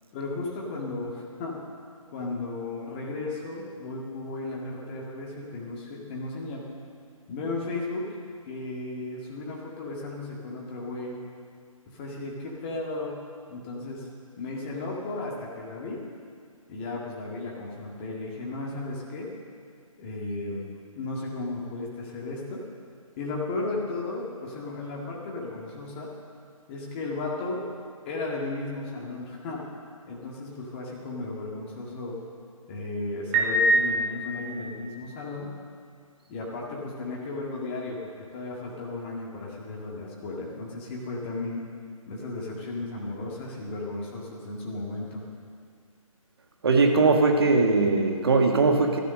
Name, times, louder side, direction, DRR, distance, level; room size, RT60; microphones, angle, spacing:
voice 1, 0.1-1.6 2.1-6.6 7.3-8.1 8.5-11.2 11.9-13.2 13.5-14.1 14.4-16.0 16.7-19.3 20.0-20.6 21.0-22.6 23.2-26.1 26.7-27.6 28.1-29.7 30.1-32.2 32.7-35.5 36.3-41.6 42.1-45.2, left 2 dB, 20° left, -3 dB, 2.0 m, -34 dB
Piano, 33.3-34.8, right 1 dB, 15° right, 1.6 m, -24 dB
voice 2, 46.6-49.0, right 3 dB, 45° right, 3 dB, 1.5 m, -20 dB
14.5 x 10.0 x 6.5 m, 2.2 s
figure-of-eight pair, 145°, 18 cm